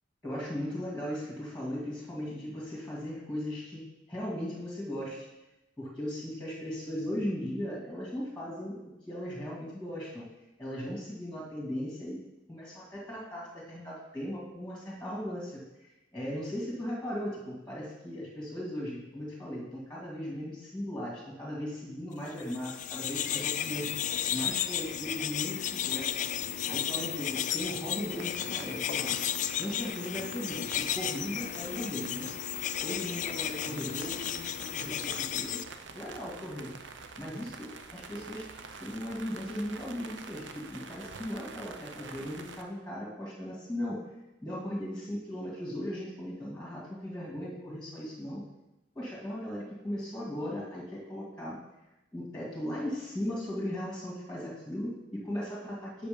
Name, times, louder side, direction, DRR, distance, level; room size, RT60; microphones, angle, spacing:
voice 1, 0.2-5.3 5.8-8.8 9.1-10.2 10.6-12.2 12.5-26.3 26.7-29.1 29.6-32.3 32.8-35.6 35.9-36.7 37.2-38.5 38.8-44.0 44.4-48.4 48.9-51.6 52.1-56.1, equal, 5° left, -5 dB, 2.1 m, -37 dB
sound 1, 22.4-35.6, left 10 dB, 45° left, 0.3 m, -33 dB
sound 2, 28.1-42.6, right 4 dB, 75° right, 0.7 m, -47 dB
8.0 x 6.1 x 5.1 m, 0.96 s
head